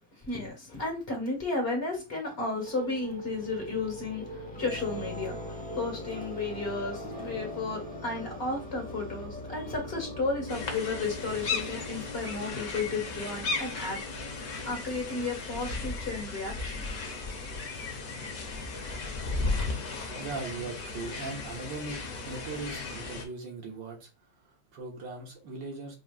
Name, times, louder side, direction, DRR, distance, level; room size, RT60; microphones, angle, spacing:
voice 1, 0.2-14.0 14.7-16.8, left 3 dB, 30° left, 1.8 m, -33 dB
sound 1, 2.5-15.4, left 1 dB, 5° left, 0.7 m, -41 dB
sound 2, 10.5-23.2, left 3 dB, 55° left, 1.4 m, -35 dB
voice 2, 20.2-24.1 24.4-26.0, right 3 dB, 70° right, 1.8 m, -39 dB
6.1 x 3.1 x 2.4 m
omnidirectional pair, 2.1 m